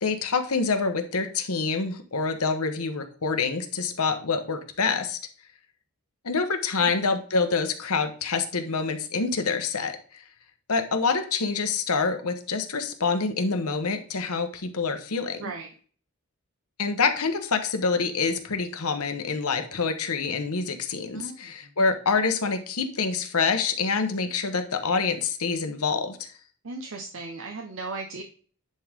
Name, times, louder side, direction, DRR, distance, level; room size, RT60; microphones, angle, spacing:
voice 1, 0.0-5.2 6.2-10.2 10.7-15.4 16.8-26.3, left 4 dB, 85° left, 7 dB, 1.1 m, -26 dB
voice 2, 15.4-15.7 21.1-21.7 26.6-28.2, right 3 dB, 60° right, 2 dB, 0.8 m, -37 dB
10.0 x 3.8 x 3.6 m, 0.41 s
head